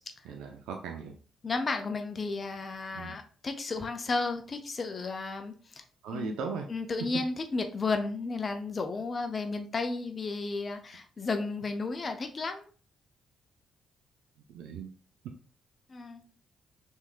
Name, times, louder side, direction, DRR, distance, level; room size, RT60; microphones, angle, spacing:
voice 1, 0.2-1.1 2.9-3.2 6.0-6.7 14.5-14.9, right 6 dB, 85° right, 3 dB, 0.4 m, -38 dB
voice 2, 1.4-5.8 6.1-6.4 6.7-12.7 15.9-16.2, left 3 dB, 40° left, 7 dB, 0.5 m, -33 dB
3.5 x 3.1 x 2.4 m, 0.40 s
cardioid pair, 75°, 0 cm